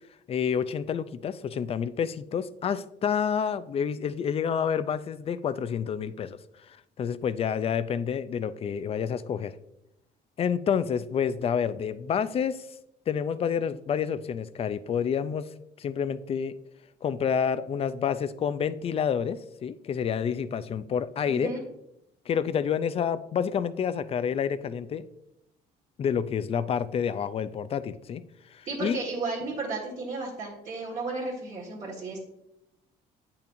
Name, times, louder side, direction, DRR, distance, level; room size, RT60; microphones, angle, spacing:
voice 1, 0.3-6.4 6.7-9.5 10.4-12.7 13.1-15.5 15.8-16.6 17.0-21.5 22.3-25.1 26.0-28.2 28.5-29.0, left 7 dB, 35° left, 14 dB, 0.4 m, -28 dB
voice 2, 21.2-21.6 28.6-32.2, right 3 dB, 50° right, -4 dB, 1.7 m, -33 dB
8.7 x 5.7 x 2.6 m, 0.82 s
cardioid pair, 110°, 17 cm